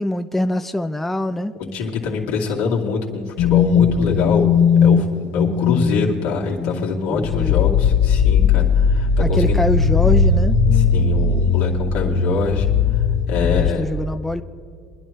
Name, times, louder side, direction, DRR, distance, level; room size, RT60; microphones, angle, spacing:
voice 1, 0.0-1.5 7.1-7.7 9.2-10.6 13.4-14.4, left 1 dB, 5° left, 9 dB, 0.4 m, -24 dB
voice 2, 1.6-4.5 4.8-5.1 5.3-9.6 10.7-12.7 13.3-13.9, left 4 dB, 80° left, -3 dB, 2.6 m, -24 dB
sound 1, 3.4-6.1 6.5-6.8 7.2-13.7, left 6 dB, 65° left, 0.9 m, -17 dB
23.5 x 10.5 x 3.3 m, 2.2 s
supercardioid pair, 105°, 5 cm